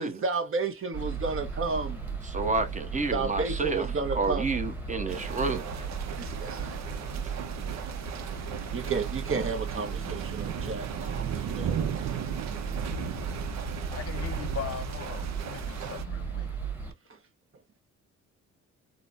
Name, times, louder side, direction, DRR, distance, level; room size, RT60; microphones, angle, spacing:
voice 1, 0.0-2.0 3.1-4.4 5.0-5.3 5.6-5.9 6.1-6.8 8.7-12.3, right 4 dB, 45° right, 1.0 m, -33 dB
sound 1, 0.9-16.9, right 5 dB, 5° right, 1.2 m, -36 dB
voice 2, 2.3-3.9 4.1-5.7, right 3 dB, 25° right, 0.9 m, -29 dB
sound 2, 5.1-16.0, right 9 dB, 60° right, 0.7 m, -37 dB
voice 3, 13.9-16.5, left 8 dB, 50° left, 0.7 m, -40 dB
4.0 x 2.1 x 2.5 m
cardioid pair, 90°, 30 cm